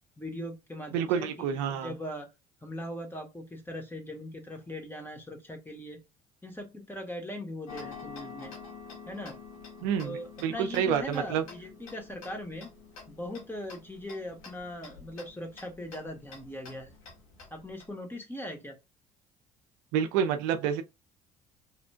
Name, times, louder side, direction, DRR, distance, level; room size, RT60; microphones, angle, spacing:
voice 1, 0.2-2.3 2.6-6.0 6.4-8.5 9.1-9.4 10.0-12.7 13.1-17.0 17.5-18.8, left 1 dB, 10° left, 1.9 m, -40 dB
voice 2, 0.9-1.9 9.8-11.4 19.9-20.8, right 8 dB, 75° right, 0.6 m, -28 dB
Tick-tock, 7.7-17.9, left 5 dB, 85° left, 1.5 m, -48 dB
4.8 x 3.2 x 2.3 m
hypercardioid pair, 55°, 18 cm